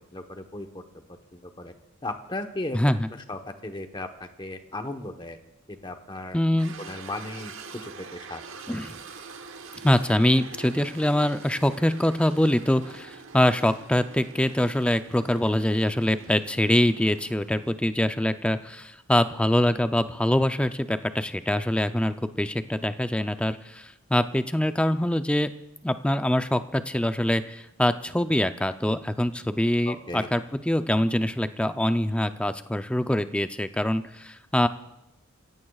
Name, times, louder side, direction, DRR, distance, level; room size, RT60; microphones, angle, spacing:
voice 1, 0.1-0.8 1.3-1.7 2.0-2.8 3.3-5.4 5.7-6.4 6.8-8.4 29.8-30.3, left 2 dB, 25° left, 6 dB, 1.0 m, -36 dB
voice 2, 2.7-3.1 6.3-6.7 8.7-9.0 9.8-25.5 25.8-34.7, left 1 dB, 5° left, 9 dB, 0.5 m, -24 dB
sound 1, 6.6-17.7, right 4 dB, 80° right, 1.2 m, -45 dB
29.0 x 16.0 x 2.4 m, 0.91 s
head